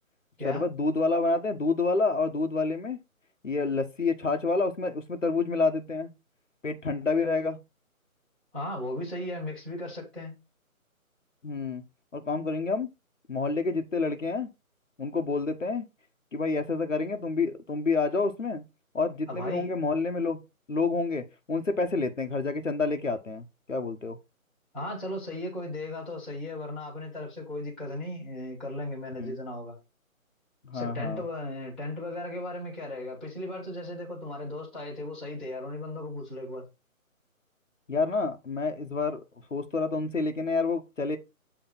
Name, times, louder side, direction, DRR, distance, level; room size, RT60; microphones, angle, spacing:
voice 1, 0.4-3.0 3.4-6.1 6.6-7.6 11.4-11.8 12.1-12.9 13.3-14.5 15.0-15.8 16.3-18.6 18.9-20.4 20.7-24.2 29.2-29.4 30.6-31.2 37.9-39.2 39.5-41.2, left 3 dB, 60° left, 1.4 m, -28 dB
voice 2, 8.5-10.3 19.3-19.7 24.7-29.8 30.7-36.7, left 1 dB, ahead, 1.7 m, -36 dB
8.2 x 3.5 x 5.4 m
figure-of-eight pair, 150°, 43 cm